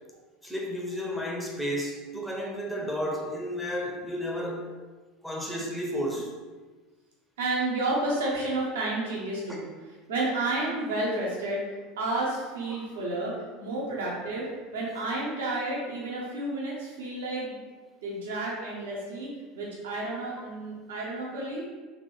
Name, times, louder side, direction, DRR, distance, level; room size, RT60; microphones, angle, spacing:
voice 1, 0.4-4.7 5.2-6.3 12.7-12.8, equal, ahead, -2 dB, 0.8 m, -32 dB
voice 2, 7.4-11.6 12.0-14.5 14.7-17.6 18.0-21.6, right 2 dB, 65° right, -4 dB, 1.1 m, -31 dB
3.9 x 3.3 x 3.5 m, 1.3 s
figure-of-eight pair, 75°, 0 cm